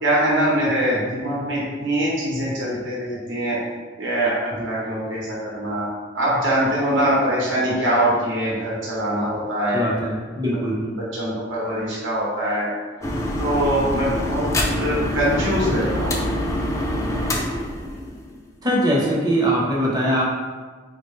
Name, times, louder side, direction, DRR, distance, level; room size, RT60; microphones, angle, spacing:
voice 1, 0.0-3.6 4.0-5.9 6.1-9.9 10.9-12.7 13.4-14.5 14.8-16.2, right 1 dB, 75° right, -6 dB, 0.8 m, -23 dB
voice 2, 9.7-10.8 18.6-20.2, equal, 20° right, -4 dB, 0.6 m, -21 dB
sound 1, 13.0-18.5, left 1 dB, 15° left, 0.3 m, -25 dB
3.6 x 2.2 x 3.1 m, 1.5 s
head